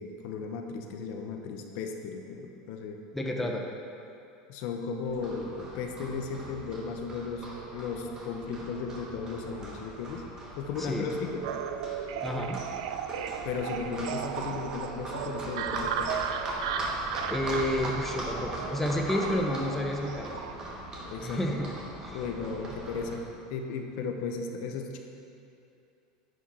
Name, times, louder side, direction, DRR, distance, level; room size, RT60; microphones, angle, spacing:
voice 1, 0.0-3.0 3.4-3.6 4.5-7.5 7.7-10.2 10.6-11.5 13.4-16.1 21.0-21.5 22.1-25.0, left 5 dB, 60° left, 3 dB, 0.8 m, -35 dB
voice 2, 3.1-3.6 10.8-11.1 12.2-12.6 17.3-20.4 21.2-21.7 22.0-22.2, left 1 dB, 5° left, 1 dB, 0.6 m, -30 dB
Livestock farm animals working animals, 5.0-23.2, right 1 dB, 25° right, 1.4 m, -40 dB
sound 1, 11.4-20.5, right 8 dB, 80° right, 0.4 m, -36 dB
10.0 x 4.9 x 4.2 m, 2.6 s
supercardioid pair, 130°, 3 cm